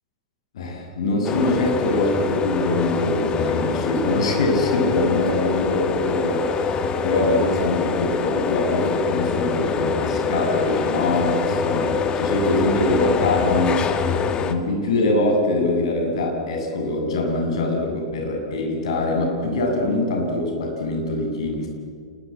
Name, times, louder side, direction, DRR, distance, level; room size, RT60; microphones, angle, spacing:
voice 1, 0.5-13.8 14.4-21.7, left 2 dB, 65° left, 2 dB, 7.5 m, -23 dB
sound 1, 1.2-14.5, left 5 dB, 30° left, 2.2 m, -24 dB
28.0 x 21.0 x 8.8 m, 2.1 s
figure-of-eight pair, 100°, 3 cm